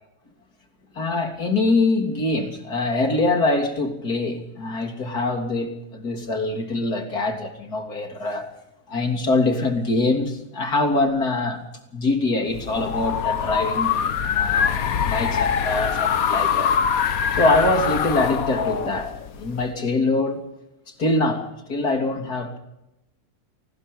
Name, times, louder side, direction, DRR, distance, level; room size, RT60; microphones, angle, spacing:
voice 1, 1.0-8.5 8.9-11.6 11.9-16.7 17.3-19.1 19.4-20.4 21.0-22.6, left 2 dB, 85° left, 3.7 m, -24 dB
sound 1, 12.5-19.7, left 7 dB, 65° left, 1.6 m, -23 dB
27.5 x 20.0 x 5.5 m
omnidirectional pair, 1.6 m